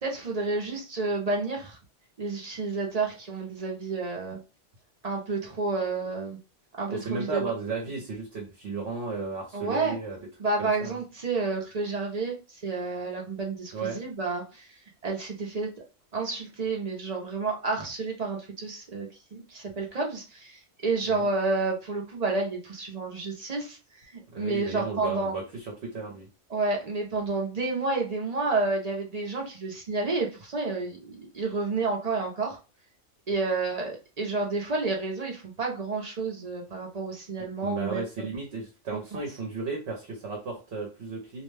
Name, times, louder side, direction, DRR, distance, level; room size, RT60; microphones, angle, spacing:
voice 1, 0.0-1.8 2.2-4.4 5.0-6.4 6.8-7.5 9.5-9.9 10.4-14.7 15.0-15.7 16.1-25.3 26.5-32.6 33.3-38.0, right 3 dB, 45° right, 0 dB, 0.5 m, -30 dB
voice 2, 6.9-10.2 10.6-11.0 13.7-14.0 21.1-21.3 24.3-26.3 37.6-41.4, right 4 dB, 60° right, 0 dB, 0.9 m, -34 dB
2.5 x 2.1 x 3.2 m, 0.32 s
omnidirectional pair, 1.4 m